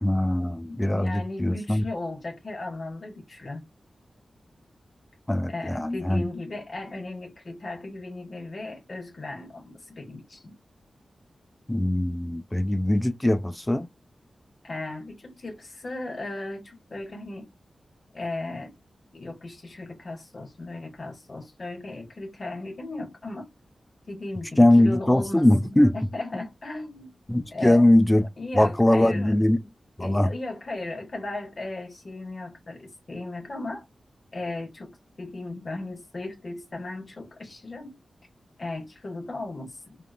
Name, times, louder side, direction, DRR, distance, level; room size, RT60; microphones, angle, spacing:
voice 1, 0.0-1.8 5.3-6.2 11.7-13.9 24.6-26.0 26.3-26.4 27.3-28.3 28.5-29.6 30.0-30.3, left 1 dB, 15° left, 0.4 m, -21 dB
voice 2, 0.7-3.6 5.5-10.6 14.6-17.5 18.1-18.7 19.1-23.5 24.1-27.1 27.5-27.9 28.4-29.3 30.0-33.8 34.3-37.9 38.6-40.0, left 2 dB, 45° left, 1.1 m, -36 dB
3.5 x 2.4 x 2.2 m
wide cardioid pair, 85°, 0 cm